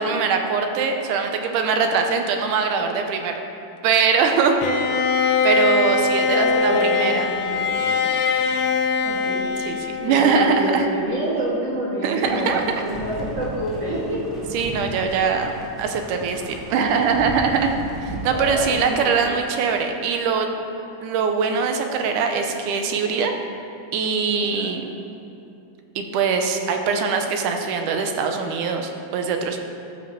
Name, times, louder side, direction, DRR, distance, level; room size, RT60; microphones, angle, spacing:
voice 1, 0.0-3.3 3.8-4.9 5.4-7.3 9.7-10.9 12.0-12.6 14.5-15.5 15.8-17.7 18.0-20.5 21.0-23.3 23.9-24.8 26.0-29.6, right 5 dB, 75° right, 4 dB, 2.3 m, -22 dB
Bowed string instrument, 4.6-10.7, left 4 dB, 75° left, 1.5 m, -22 dB
voice 2, 6.3-8.0 9.0-9.5 10.1-14.2 18.3-19.2 24.4-24.7, right 1 dB, 50° right, -8 dB, 2.6 m, -27 dB
sound 1, 12.2-18.8, equal, ahead, 1.2 m, -36 dB
12.5 x 5.5 x 6.9 m, 2.7 s
omnidirectional pair, 3.7 m